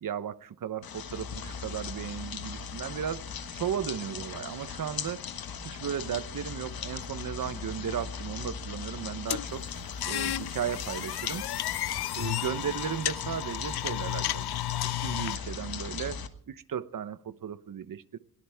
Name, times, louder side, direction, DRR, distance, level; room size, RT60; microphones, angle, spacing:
voice 1, 0.0-3.3 3.5-5.2 5.6-9.6 10.1-11.4 12.1-16.2 16.5-18.2, right 8 dB, 60° right, 1.0 m, -35 dB
sound 1, 0.8-16.3, left 6 dB, 70° left, 1.5 m, -38 dB
sound 2, 9.3-15.4, left 14 dB, 85° left, 0.6 m, -33 dB
22.0 x 18.0 x 3.5 m
wide cardioid pair, 170°, 37 cm